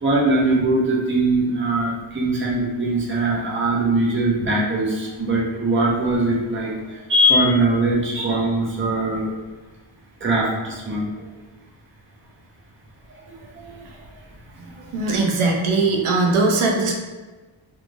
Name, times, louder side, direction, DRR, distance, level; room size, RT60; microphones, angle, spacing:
voice 1, 0.0-6.7 7.1-9.3 10.2-11.1 13.6-13.8, right 1 dB, 25° right, -3 dB, 0.5 m, -21 dB
voice 2, 14.9-16.9, right 3 dB, 75° right, 0 dB, 0.6 m, -20 dB
3.1 x 2.3 x 2.5 m, 1.2 s
wide cardioid pair, 140°, 49 cm